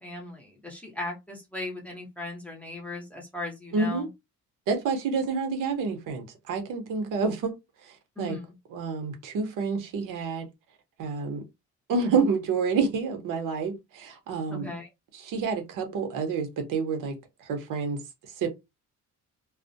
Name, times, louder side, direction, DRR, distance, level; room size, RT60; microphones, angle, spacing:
voice 1, 0.0-4.0 8.2-8.4 14.5-14.9, left 2 dB, 5° left, 0.6 m, -37 dB
voice 2, 3.7-4.1 4.7-7.5 7.8-8.4 8.7-10.5 11.0-11.4 11.9-14.7 15.1-18.5, right 4 dB, 90° right, 0.9 m, -29 dB
2.3 x 2.0 x 2.6 m
cardioid pair, 160°, 31 cm